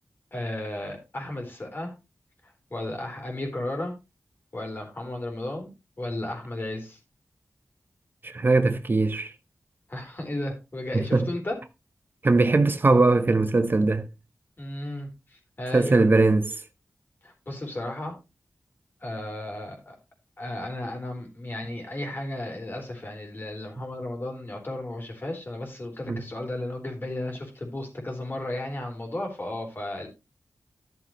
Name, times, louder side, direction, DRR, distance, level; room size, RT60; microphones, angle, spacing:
voice 1, 0.3-1.9 2.7-3.9 4.5-5.7 6.0-7.0 9.9-11.6 14.6-16.0 17.2-18.2 19.0-20.0 20.4-30.1, left 1 dB, 40° left, 3.9 m, -34 dB
voice 2, 8.2-9.3 10.9-11.3 12.2-14.1 15.7-16.6 26.1-26.2, right 3 dB, 40° right, 0.8 m, -21 dB
12.0 x 7.1 x 3.1 m
wide cardioid pair, 70°, 5 cm